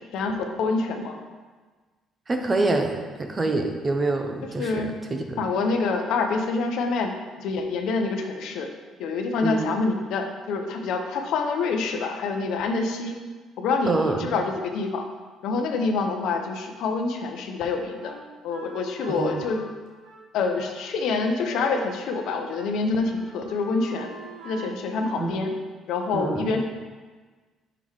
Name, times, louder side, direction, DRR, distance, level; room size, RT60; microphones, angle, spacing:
voice 1, 0.1-1.2 4.6-4.9 5.4-7.1 7.4-8.7 9.0-13.2 13.6-15.0 15.4-18.2 18.4-19.6 20.3-24.1 24.4-25.5 25.9-26.6, left 4 dB, 75° left, 4 dB, 0.7 m, -26 dB
voice 2, 2.3-5.4 9.4-9.7 13.9-14.4 19.1-19.4 25.2-25.4 26.1-26.6, right 2 dB, 25° right, 4 dB, 0.6 m, -26 dB
Wind instrument woodwind instrument, 18.0-22.3 22.5-22.7 23.0-25.3, right 2 dB, 85° right, 1.1 m, -43 dB
5.7 x 3.8 x 4.7 m, 1.4 s
cardioid pair, 130°, 0 cm